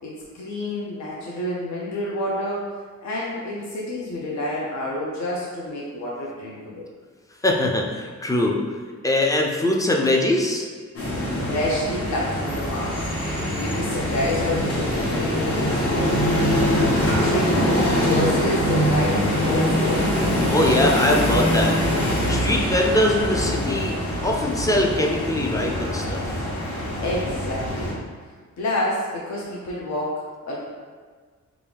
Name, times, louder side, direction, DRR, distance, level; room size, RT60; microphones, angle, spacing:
voice 1, 0.0-2.7 3.0-6.8 11.4-20.3 27.0-28.0 28.6-30.6, left 1 dB, 70° left, -4 dB, 0.6 m, -29 dB
voice 2, 7.4-8.6 9.0-10.7 20.5-21.8 22.3-23.9 24.2-26.5, left 1 dB, 10° left, -1 dB, 0.3 m, -22 dB
sound 1, 10.9-27.9, equal, 50° left, 1.0 m, -23 dB
3.6 x 2.5 x 3.4 m, 1.5 s
wide cardioid pair, 130°, 30 cm